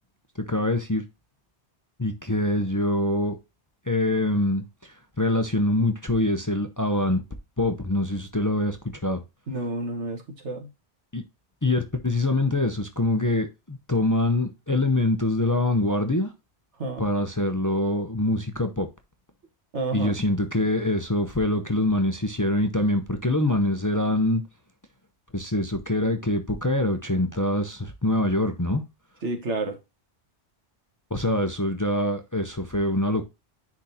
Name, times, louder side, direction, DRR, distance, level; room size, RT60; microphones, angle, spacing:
voice 1, 0.5-1.0 2.0-3.4 3.9-7.2 7.6-8.8 9.0-9.2 11.1-11.2 11.6-16.3 17.0-18.9 19.9-24.4 25.3-28.8 31.1-33.2, left 1 dB, 20° left, 0.7 m, -24 dB
voice 2, 9.5-10.7 16.8-17.1 19.7-20.1 29.2-29.8, right 2 dB, 80° right, 1.8 m, -30 dB
10.0 x 3.7 x 2.8 m
omnidirectional pair, 1.2 m